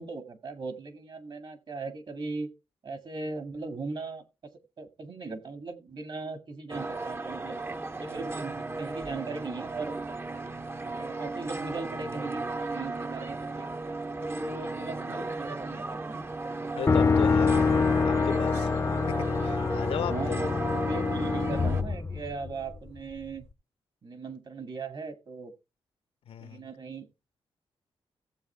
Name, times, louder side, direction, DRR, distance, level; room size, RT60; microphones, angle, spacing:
voice 1, 0.0-2.5 2.8-4.2 4.8-7.6 7.9-9.9 10.9-13.7 14.2-16.2 20.1-23.5 24.0-25.5 26.4-27.1, right 3 dB, 55° right, 1.9 m, -38 dB
sound 1, 6.7-21.8, right 3 dB, 25° right, 0.7 m, -35 dB
voice 2, 16.7-18.7 19.1-20.4 26.3-26.6, left 8 dB, 85° left, 1.0 m, -36 dB
sound 2, 16.9-22.8, left 5 dB, 30° left, 0.5 m, -26 dB
15.0 x 7.5 x 3.3 m
cardioid pair, 80°, 10 cm